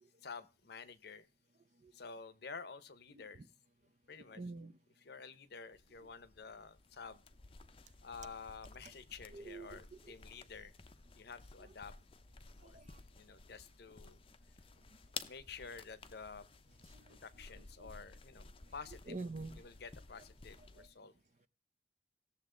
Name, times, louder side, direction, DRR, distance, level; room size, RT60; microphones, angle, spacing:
voice 1, 0.2-1.2 1.9-3.4 4.1-4.4 5.0-7.2 8.0-10.7 11.2-11.9 12.6-12.8 13.1-14.2 15.3-16.5 17.1-19.2 19.6-21.1, left 5 dB, 60° left, 0.8 m, -50 dB
voice 2, 4.3-4.8 9.3-9.8 10.0-10.1 12.6-13.0 16.9-17.2 17.8-17.9 19.1-19.6 20.8-20.9, right 3 dB, 40° right, 0.6 m, -46 dB
sound 1, 5.7-20.9, left 5 dB, 30° left, 0.6 m, -54 dB
18.0 x 7.1 x 3.8 m
head